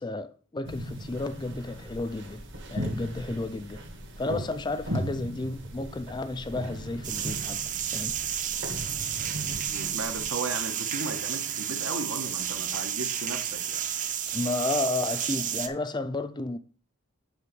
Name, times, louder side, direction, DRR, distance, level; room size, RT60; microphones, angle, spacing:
voice 1, 0.0-2.4 2.7-3.8 4.2-7.6 7.9-8.2 14.3-16.6, left 2 dB, 20° left, 0.4 m, -32 dB
sound 1, 0.6-10.3, equal, 55° right, 1.9 m, -38 dB
sound 2, 7.0-15.7, right 9 dB, 35° right, 0.6 m, -31 dB
voice 2, 9.7-13.8, right 3 dB, 75° right, 1.6 m, -35 dB
8.2 x 4.1 x 6.9 m
head